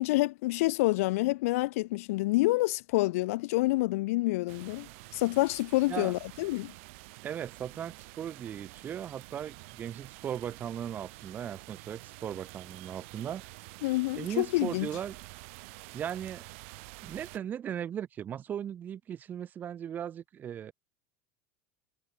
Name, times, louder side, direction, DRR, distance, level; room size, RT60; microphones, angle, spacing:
voice 1, 0.0-6.7 13.8-14.9, left 20 dB, 70° left, 1.8 m, -28 dB
sound 1, 4.5-17.4, right 27 dB, 55° right, 4.3 m, -49 dB
voice 2, 7.2-13.4 14.2-15.2 15.9-16.5 17.0-20.7, right 9 dB, 20° right, 3.4 m, -37 dB
supercardioid pair, 175°, 8 cm